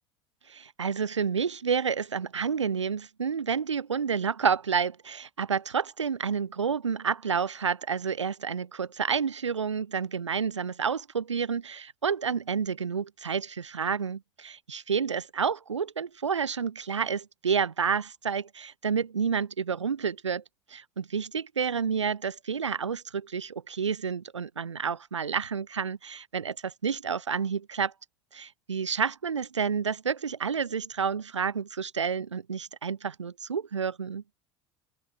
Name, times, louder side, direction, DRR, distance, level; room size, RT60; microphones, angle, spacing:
voice 1, 0.5-20.4 20.7-27.9 28.3-34.2, right 6 dB, 90° right, 1.6 m, -30 dB
hypercardioid pair, 70°, 15 cm